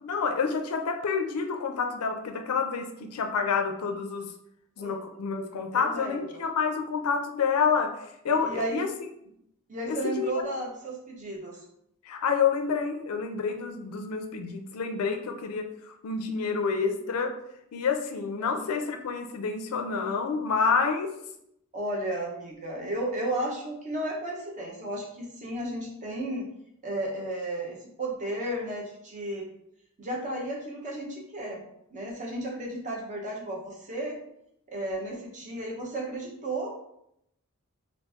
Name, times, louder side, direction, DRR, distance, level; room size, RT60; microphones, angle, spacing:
voice 1, 0.0-4.3 4.8-8.9 9.9-10.3 12.0-17.3 17.7-21.1, left 5 dB, 90° left, 5 dB, 0.4 m, -28 dB
voice 2, 5.7-6.4 8.3-8.8 9.7-11.6 18.4-18.5 21.7-26.4 26.8-29.5 30.0-31.6 31.9-34.2 34.7-36.7, right 1 dB, 35° right, -2 dB, 0.8 m, -33 dB
2.9 x 2.6 x 3.4 m, 0.77 s
head